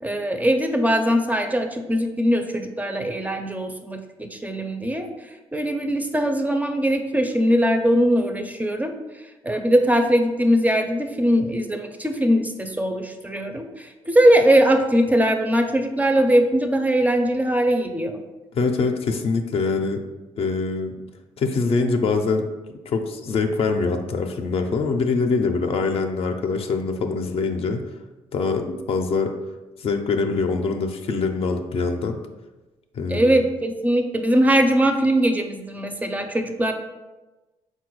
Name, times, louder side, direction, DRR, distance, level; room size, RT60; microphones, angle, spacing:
voice 1, 0.0-5.1 5.5-8.9 9.4-18.2 33.1-36.7, equal, 15° right, 6 dB, 0.4 m, -21 dB
voice 2, 18.5-20.0 20.4-21.0 21.4-22.5 22.9-27.8 28.3-29.3 29.8-32.2 32.9-33.4, left 4 dB, 60° left, 5 dB, 0.4 m, -24 dB
3.9 x 2.2 x 4.5 m, 1.1 s
cardioid pair, 80°, 11 cm